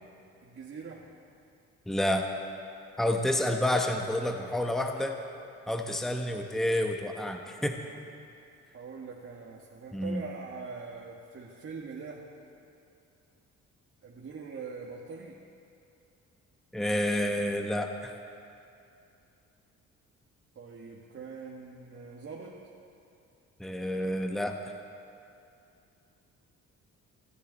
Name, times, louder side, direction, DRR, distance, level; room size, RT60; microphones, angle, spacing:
voice 1, 0.4-1.1 5.6-6.0 6.3-6.5 7.3-8.0 8.7-12.3 14.0-15.4 20.6-22.6, right 5 dB, 50° right, -3 dB, 1.8 m, -43 dB
voice 2, 1.9-2.3 3.0-5.2 5.7-7.8 9.9-10.2 16.7-18.1 23.6-24.6, left 1 dB, ahead, 3 dB, 1.0 m, -29 dB
29.5 x 10.0 x 4.2 m, 2.6 s
cardioid pair, 90°, 30 cm